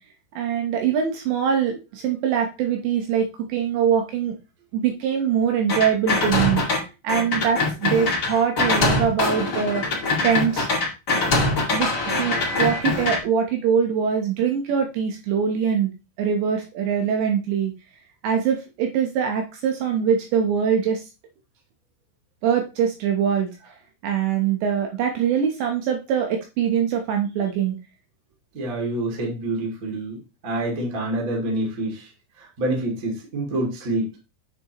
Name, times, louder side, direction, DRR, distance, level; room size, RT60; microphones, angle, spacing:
voice 1, 0.4-4.4 4.7-6.6 7.0-10.7 11.7-11.9 12.2-15.9 16.2-17.7 18.2-21.0 22.4-23.5 24.0-27.8, right 7 dB, 75° right, 3 dB, 2.9 m, -23 dB
sound 1, 5.7-6.8 7.1-13.2, left 2 dB, 75° left, 0.9 m, -23 dB
voice 2, 28.5-32.1 32.4-34.1, right 1 dB, 35° right, -1 dB, 1.3 m, -27 dB
8.8 x 7.0 x 3.0 m, 0.29 s
omnidirectional pair, 6.0 m